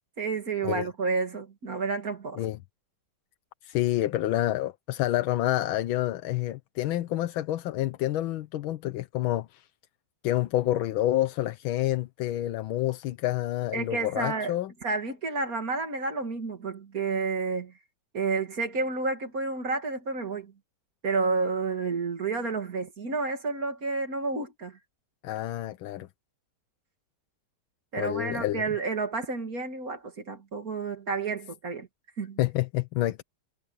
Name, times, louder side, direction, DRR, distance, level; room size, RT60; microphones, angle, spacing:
voice 1, 0.2-2.4 13.7-14.6 14.8-17.7 18.1-20.5 21.0-24.8 27.9-31.9 32.2-32.4, right 4 dB, 40° right, 2.6 m, -30 dB
voice 2, 3.6-9.7 10.2-14.7 25.2-26.1 28.0-28.6 32.4-33.2, left 14 dB, 75° left, 1.5 m, -28 dB
omnidirectional pair, 2.3 m